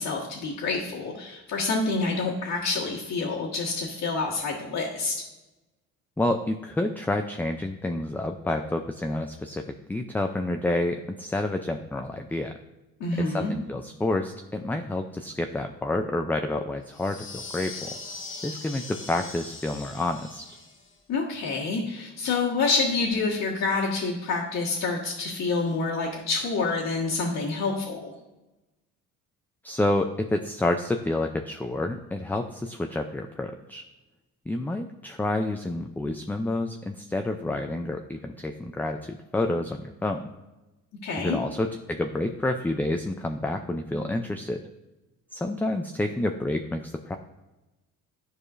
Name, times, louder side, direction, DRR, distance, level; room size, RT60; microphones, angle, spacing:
voice 1, 0.0-5.1 13.0-13.6 21.1-28.1 41.0-41.4, left 3 dB, 70° left, -7 dB, 1.5 m, -27 dB
voice 2, 6.2-9.6 9.9-12.5 13.2-17.9 18.4-20.4 29.6-33.8 34.5-40.2 41.2-44.6 45.3-47.2, left 2 dB, 5° left, 5 dB, 0.4 m, -29 dB
sound 1, 16.9-20.9, left 3 dB, 40° left, 1.6 m, -40 dB
10.5 x 4.8 x 2.5 m, 1.0 s
cardioid pair, 90°, 31 cm